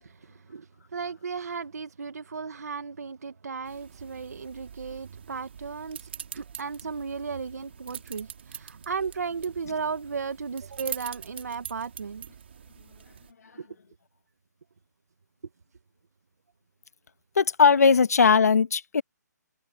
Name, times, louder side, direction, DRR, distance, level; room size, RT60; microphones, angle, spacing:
voice 1, 0.0-12.3 13.6-13.7, right 5 dB, 60° right, 1.5 m, -35 dB
sound 1, 3.7-13.3, right 8 dB, 35° right, 2.9 m, -44 dB
voice 2, 17.3-19.0, left 5 dB, 55° left, 1.5 m, -19 dB
hypercardioid pair, 175°, 10 cm